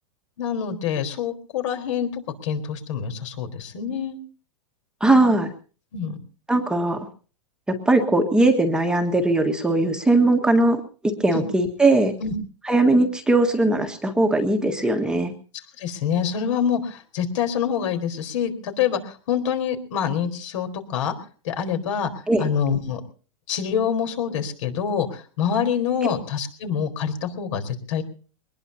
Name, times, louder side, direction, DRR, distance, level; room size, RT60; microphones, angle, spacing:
voice 1, 0.4-4.2 5.9-6.2 11.3-11.4 12.2-12.3 15.8-21.1 21.4-22.1 22.4-23.0 23.5-28.0, left 8 dB, 65° left, 7 dB, 4.2 m, -26 dB
voice 2, 5.0-5.5 6.5-7.1 7.7-12.1 12.7-15.3 22.3-22.5, right 2 dB, 5° right, 3 dB, 1.6 m, -20 dB
23.0 x 20.0 x 2.8 m, 0.39 s
supercardioid pair, 150°, 17 cm